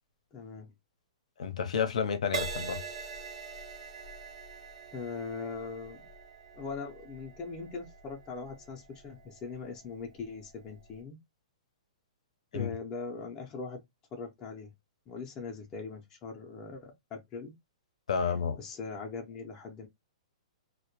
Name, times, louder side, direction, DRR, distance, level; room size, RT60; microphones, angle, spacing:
voice 1, 0.3-0.7 4.9-6.0 6.5-11.2 12.5-13.8 14.1-14.7 15.1-17.5 18.2-19.9, left 4 dB, 20° left, 0.5 m, -41 dB
voice 2, 1.4-2.8 12.5-12.7 18.1-18.6, left 6 dB, 80° left, 0.5 m, -30 dB
Crash cymbal, 2.3-10.0 10.6-10.9, right 5 dB, 80° right, 0.7 m, -43 dB
2.1 x 2.1 x 2.9 m
hypercardioid pair, 160°, 4 cm